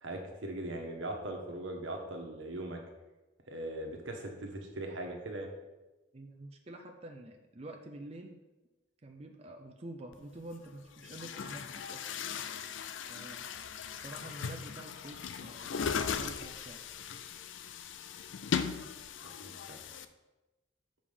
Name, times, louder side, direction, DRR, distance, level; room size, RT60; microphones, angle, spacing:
voice 1, 0.0-2.8 3.5-5.5 19.3-19.8, right 1 dB, 90° right, 2 dB, 1.4 m, -40 dB
voice 2, 6.1-8.4 9.0-12.1 13.1-13.5 13.9-16.9, right 1 dB, 35° right, 3 dB, 0.6 m, -48 dB
Chatter / Gurgling / Tap, 10.1-10.2 10.9-20.0, left 6 dB, 85° left, 0.5 m, -38 dB
7.4 x 5.1 x 5.1 m, 1.1 s
head